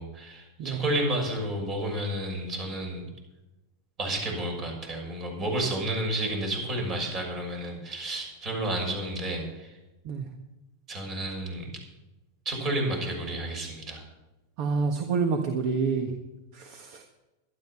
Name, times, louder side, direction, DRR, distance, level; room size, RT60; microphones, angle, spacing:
voice 1, 0.0-3.1 4.0-9.8 10.9-11.8 12.4-14.0, right 1 dB, 35° right, 2 dB, 6.5 m, -31 dB
voice 2, 14.6-16.1 16.5-17.0, right 5 dB, 55° right, 5 dB, 1.5 m, -28 dB
13.0 x 12.0 x 5.9 m, 1.0 s
hypercardioid pair, 110°, 0 cm